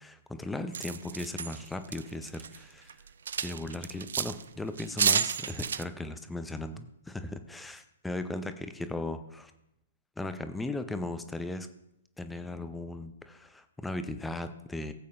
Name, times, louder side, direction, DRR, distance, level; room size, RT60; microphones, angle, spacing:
voice 1, 0.0-2.9 3.4-9.5 10.2-11.7 12.2-14.9, left 2 dB, 5° left, 9 dB, 0.7 m, -37 dB
sound 1, 0.7-2.6 2.9-4.4 4.8-5.8, right 7 dB, 60° right, 0.4 m, -30 dB
17.5 x 8.5 x 2.6 m, 0.80 s
figure-of-eight pair, 120°, 0 cm